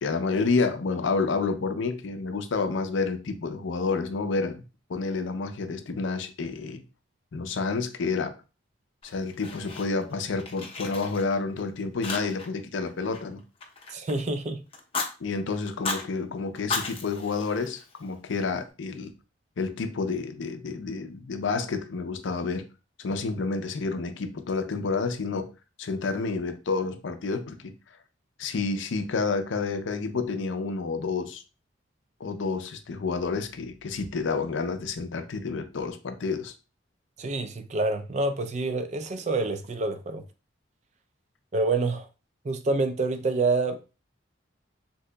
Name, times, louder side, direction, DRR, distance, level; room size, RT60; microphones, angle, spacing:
voice 1, 0.0-4.6 4.9-6.8 7.3-8.3 9.0-13.4 15.2-19.1 19.6-22.6 23.0-25.5 25.8-27.7 28.4-31.4 32.2-36.5, left 4 dB, 75° left, 0.5 m, -29 dB
Fire, 9.0-10.1 10.4-11.6 12.0-12.6 12.8-14.3 14.7-15.1 15.7-16.0 16.5-18.1, left 3 dB, 30° left, 0.6 m, -35 dB
voice 2, 13.9-14.6 37.2-40.2 41.5-42.1 42.4-43.9, right 3 dB, 35° right, 0.4 m, -27 dB
3.7 x 2.7 x 2.2 m
head